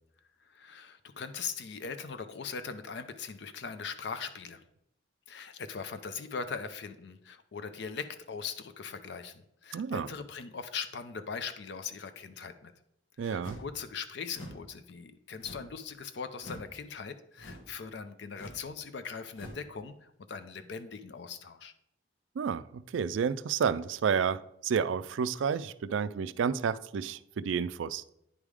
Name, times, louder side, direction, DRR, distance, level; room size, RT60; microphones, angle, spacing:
voice 1, 0.4-4.6 5.3-12.7 13.2-21.7, left 5 dB, 60° left, 0.4 m, -40 dB
voice 2, 9.7-10.1 13.2-13.6 22.4-28.0, right 6 dB, 75° right, 0.3 m, -30 dB
sound 1, 13.4-13.8 14.3-14.7 15.4-15.8 16.4-16.7 17.4-17.7 18.3-18.7 19.3-19.7, left 1 dB, 80° left, 1.3 m, -45 dB
9.7 x 3.5 x 4.8 m
head